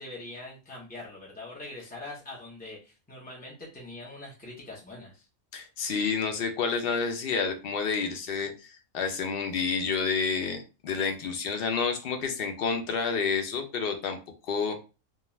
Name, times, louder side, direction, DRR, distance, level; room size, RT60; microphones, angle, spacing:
voice 1, 0.0-5.3, left 2 dB, 10° left, -5 dB, 0.4 m, -43 dB
voice 2, 5.5-14.2 14.5-14.8, left 5 dB, 60° left, 5 dB, 0.6 m, -29 dB
2.3 x 2.3 x 3.0 m, 0.31 s
omnidirectional pair, 1.4 m